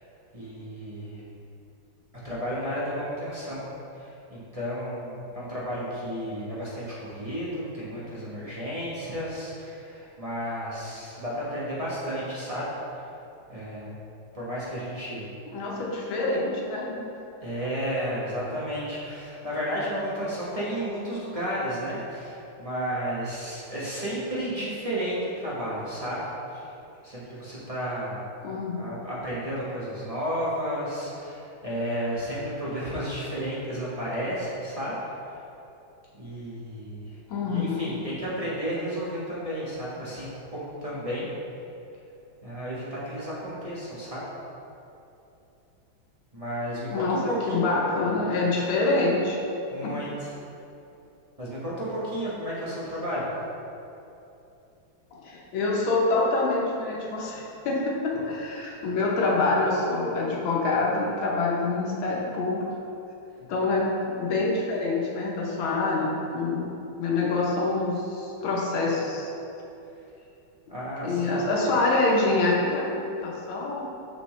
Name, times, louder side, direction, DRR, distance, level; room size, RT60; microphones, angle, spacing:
voice 1, 0.3-1.2 2.2-3.6 3.9-12.7 12.9-13.1 13.5-13.9 14.3-15.3 17.4-26.2 26.5-26.7 27.0-28.3 28.8-34.9 35.2-35.4 36.1-37.2 37.4-41.3 42.4-44.2 46.3-47.8 49.7-50.3 51.4-53.3 70.7-71.3, equal, 25° right, -8 dB, 0.9 m, -32 dB
voice 2, 15.5-17.0 28.4-29.0 37.3-38.0 46.9-49.4 49.8-50.0 55.1-62.6 63.5-66.7 67.0-69.3 71.0-73.8, left 3 dB, 85° left, -2 dB, 1.8 m, -26 dB
6.1 x 5.8 x 3.2 m, 2.8 s
omnidirectional pair, 2.1 m